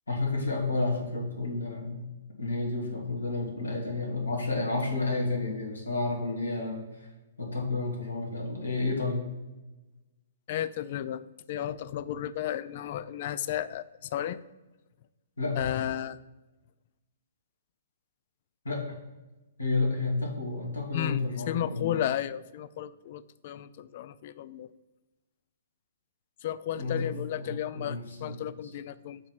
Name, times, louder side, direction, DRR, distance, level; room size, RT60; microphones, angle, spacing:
voice 1, 0.1-2.1 2.4-7.1 7.4-9.2 15.4-15.6 18.6-18.9 19.6-22.0 26.8-28.4, left 3 dB, 75° left, -1 dB, 1.9 m, -31 dB
voice 2, 10.5-11.2 11.5-14.4 15.6-16.2 20.9-21.2 21.5-24.7 26.4-29.2, left 11 dB, 45° left, 16 dB, 0.3 m, -33 dB
7.4 x 3.2 x 5.6 m, 1.1 s
figure-of-eight pair, 120°, 0 cm